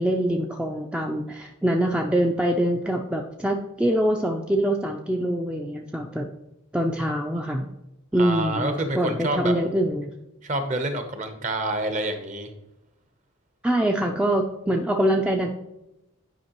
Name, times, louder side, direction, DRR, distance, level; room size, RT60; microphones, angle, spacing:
voice 1, 0.0-6.3 6.7-7.7 8.1-10.1 13.6-15.5, right 1 dB, 5° right, 2 dB, 0.4 m, -24 dB
voice 2, 8.2-9.5 10.4-12.5, right 1 dB, 35° right, 7 dB, 0.8 m, -27 dB
9.2 x 5.2 x 3.0 m, 0.90 s
head